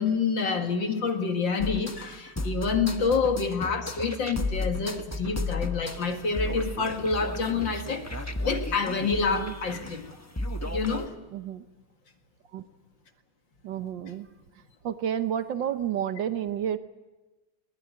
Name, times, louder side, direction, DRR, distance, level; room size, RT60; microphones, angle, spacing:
voice 1, 0.0-8.1 8.4-10.1 10.6-11.1, left 5 dB, 65° left, 5 dB, 2.6 m, -27 dB
sound 1, 1.6-11.1, left 2 dB, 15° left, 0.6 m, -34 dB
voice 2, 11.3-11.6 12.5-12.6 13.6-14.3 14.8-16.8, right 9 dB, 65° right, 10 dB, 1.6 m, -30 dB
21.5 x 19.5 x 9.5 m, 1.1 s
omnidirectional pair, 2.2 m